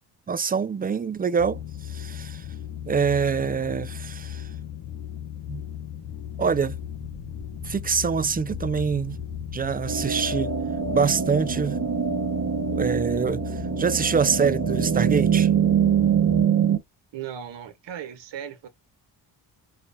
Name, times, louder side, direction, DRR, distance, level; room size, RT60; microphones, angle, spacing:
voice 1, 0.3-2.5 2.9-4.5 5.5-5.6 6.4-6.8 7.6-9.2 9.5-10.5 10.9-11.8 12.7-15.5, right 6 dB, 20° right, 0.4 m, -25 dB
sound 1, 1.4-16.4, left 10 dB, 60° left, 0.8 m, -37 dB
sound 2, 5.3-12.1, left 2 dB, ahead, 0.8 m, -44 dB
sound 3, 9.9-16.8, right 8 dB, 40° right, 1.2 m, -24 dB
voice 2, 17.1-18.7, right 9 dB, 80° right, 1.4 m, -37 dB
4.7 x 2.4 x 4.3 m
cardioid pair, 85°, 43 cm